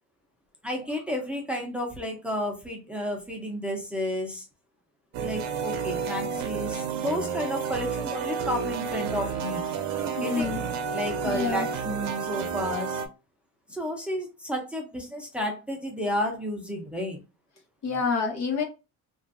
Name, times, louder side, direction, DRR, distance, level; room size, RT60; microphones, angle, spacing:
voice 1, 0.6-4.4 5.2-9.7 10.2-10.5 10.9-13.0 13.7-17.2 17.9-18.0, equal, 5° right, 0.6 m, -32 dB
sound 1, 5.1-13.1, right 6 dB, 70° right, 0.7 m, -31 dB
voice 2, 10.2-10.6 11.2-11.7 17.8-18.6, left 5 dB, 65° left, 1.1 m, -27 dB
3.0 x 2.6 x 2.5 m
cardioid pair, 120°, 30 cm